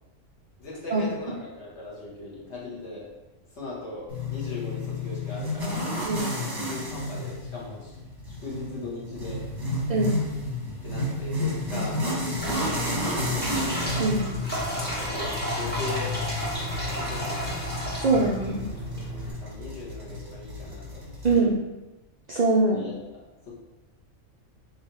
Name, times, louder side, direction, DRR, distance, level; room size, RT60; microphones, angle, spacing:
voice 1, 0.6-3.1 3.5-5.9 6.4-8.0 8.3-9.4 10.8-13.8 15.0-16.1 16.8-17.8 19.4-21.1 22.7-23.5, left 2 dB, 65° left, -6 dB, 1.4 m, -39 dB
sound 1, 4.1-21.4, left 1 dB, 20° right, 0.8 m, -32 dB
sound 2, 12.4-19.3, left 1 dB, 10° left, 0.6 m, -32 dB
voice 2, 18.0-18.6 21.2-21.6 22.3-22.8, right 3 dB, 75° right, -2 dB, 0.4 m, -22 dB
3.3 x 2.7 x 4.2 m, 1.1 s
omnidirectional pair, 1.3 m